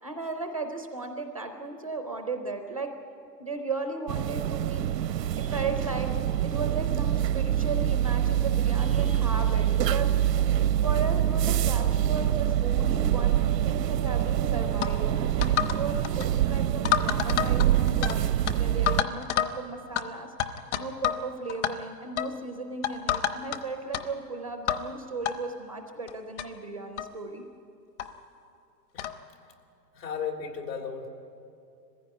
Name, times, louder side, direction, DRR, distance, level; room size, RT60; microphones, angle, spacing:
voice 1, 0.0-2.9 3.4-4.8 5.1-6.1 6.4-10.3 10.8-20.3 20.8-27.4, right 3 dB, 25° right, 5 dB, 0.4 m, -36 dB
sound 1, 4.1-19.0, right 11 dB, 75° right, 0.8 m, -25 dB
sound 2, 14.8-15.0 15.4-15.8 16.0-16.3 16.8-18.2 18.5-18.6 18.9-19.5 20.0-20.1 20.4-21.2 21.5-21.7 22.2-22.3 22.8-23.6 23.9-24.0 24.7-24.9 25.2-25.3 26.1-26.2 26.4-26.5 27.0-27.1 28.0-28.1 29.0-29.2, left 10 dB, 45° left, 0.9 m, -28 dB
voice 2, 29.9-31.1, left 6 dB, 80° left, 3 dB, 3.5 m, -34 dB
20.5 x 15.5 x 9.4 m, 2.5 s
hypercardioid pair, 165°, 50 cm